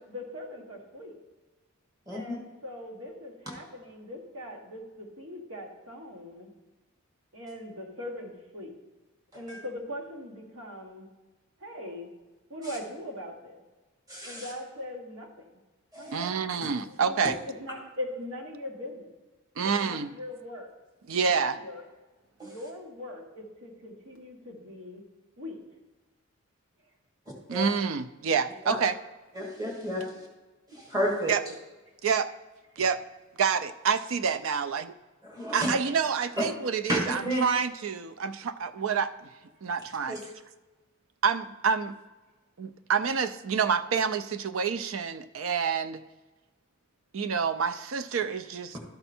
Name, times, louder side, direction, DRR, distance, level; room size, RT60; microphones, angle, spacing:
voice 1, 0.1-1.1 2.1-6.5 7.3-8.7 9.3-11.1 11.6-12.1 12.5-13.6 14.2-15.6 16.0-16.4 16.6-19.1 19.6-20.7 21.1-21.8 22.4-25.0 25.4-25.6, left 1 dB, 90° right, 1 dB, 1.6 m, -41 dB
voice 2, 2.1-2.4 9.5-9.6 14.1-14.5 15.9-16.2 22.4-22.5 27.5-27.7 28.6-28.8 29.3-30.3 30.7-31.3 35.4-35.7 36.4-36.5 36.9-37.4 40.1-40.2 48.7-48.8, equal, 15° right, -2 dB, 1.5 m, -31 dB
voice 3, 16.1-17.3 19.6-20.1 21.1-21.6 27.5-28.9 31.3-31.4 32.0-32.3 32.8-33.0 33.4-34.9 35.5-39.3 39.6-40.2 41.2-41.9 42.6-46.0 47.1-48.8, right 6 dB, 70° right, 11 dB, 0.4 m, -28 dB
12.5 x 4.4 x 4.3 m, 1.2 s
head